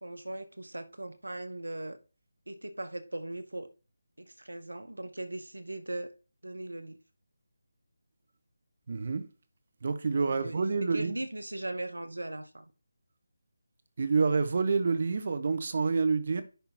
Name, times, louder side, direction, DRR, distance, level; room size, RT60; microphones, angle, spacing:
voice 1, 0.0-2.0 2.5-3.7 4.2-6.1 6.4-7.0 10.3-12.7, right 1 dB, 85° right, 1.2 m, -39 dB
voice 2, 8.9-9.3 9.8-11.2 14.0-16.4, right 4 dB, 50° right, 1.2 m, -28 dB
10.5 x 3.7 x 4.4 m
figure-of-eight pair, 160°, 0 cm